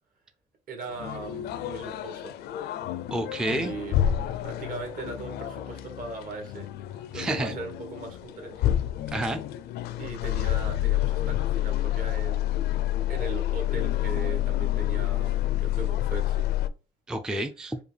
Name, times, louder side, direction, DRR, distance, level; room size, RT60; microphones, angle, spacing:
voice 1, 0.7-2.3 3.5-4.0 4.2-6.7 6.9-8.6 10.0-12.7 13.1-16.5, right 4 dB, 55° right, 1.5 m, -39 dB
sound 1, 0.9-16.7, left 13 dB, 70° left, 0.4 m, -29 dB
voice 2, 3.1-3.7 7.1-7.5 9.1-9.4 17.1-17.8, right 1 dB, 5° right, 0.3 m, -29 dB
4.8 x 2.3 x 3.2 m
cardioid pair, 110°, 17 cm